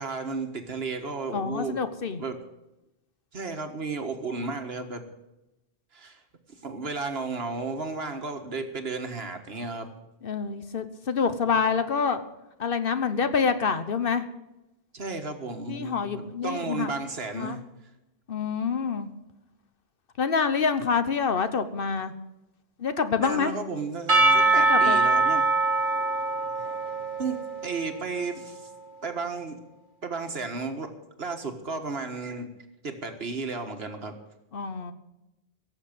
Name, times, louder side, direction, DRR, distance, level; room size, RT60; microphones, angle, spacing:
voice 1, 0.0-1.8 2.2-2.4 3.3-5.0 5.9-6.2 6.5-9.9 11.5-11.6 14.9-17.6 23.2-25.5 27.2-28.7 29.0-29.6 30.0-30.9 31.2-32.5 32.8-34.1, right 4 dB, 75° right, 6 dB, 1.8 m, -33 dB
voice 2, 1.3-2.2 10.2-12.2 12.6-14.2 15.7-16.9 17.3-17.6 18.3-19.1 20.2-22.1 22.8-23.5 24.7-25.0 34.5-34.9, left 5 dB, 60° left, 11 dB, 1.2 m, -26 dB
Percussion / Church bell, 24.1-28.4, right 3 dB, 55° right, 2.1 m, -23 dB
17.0 x 7.4 x 9.0 m, 0.96 s
omnidirectional pair, 1.0 m